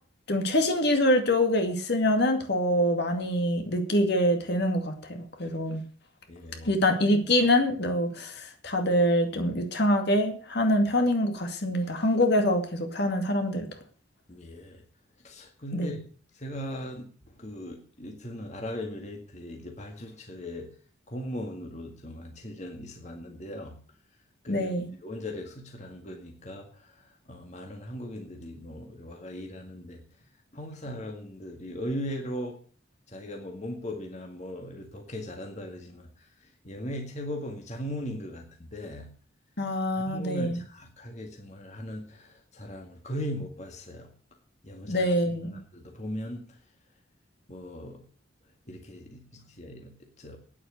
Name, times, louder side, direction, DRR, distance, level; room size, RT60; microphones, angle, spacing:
voice 1, 0.3-5.8 6.6-13.7 15.7-15.9 24.5-24.9 39.6-40.6 44.9-45.5, left 1 dB, 55° left, 5 dB, 2.2 m, -25 dB
voice 2, 6.3-6.7 14.3-14.8 15.2-16.0 16.3-20.7 21.1-23.8 24.4-24.7 25.0-30.0 30.5-32.6 33.1-39.1 40.0-44.1 44.6-45.1 45.5-46.6 47.5-48.0 48.7-50.4, left 1 dB, 35° left, 2 dB, 2.0 m, -39 dB
9.6 x 8.5 x 8.3 m, 0.42 s
head